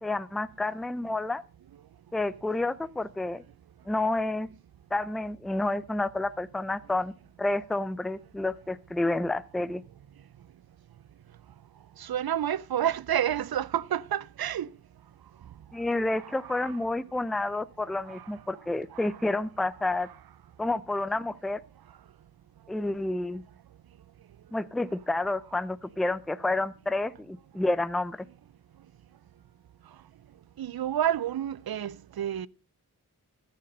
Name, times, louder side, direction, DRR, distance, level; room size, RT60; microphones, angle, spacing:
voice 1, 0.0-1.4 2.1-3.4 3.9-4.5 4.9-7.1 7.4-9.8 15.7-20.1 20.6-21.6 22.7-23.4 24.5-28.3, left 2 dB, ahead, 0.5 m, -29 dB
voice 2, 12.0-14.7 16.2-16.7 18.1-18.3 18.9-19.1 20.0-20.1 30.6-32.5, right 10 dB, 65° right, 0.5 m, -30 dB
13.5 x 6.7 x 5.3 m
cardioid pair, 45°, 39 cm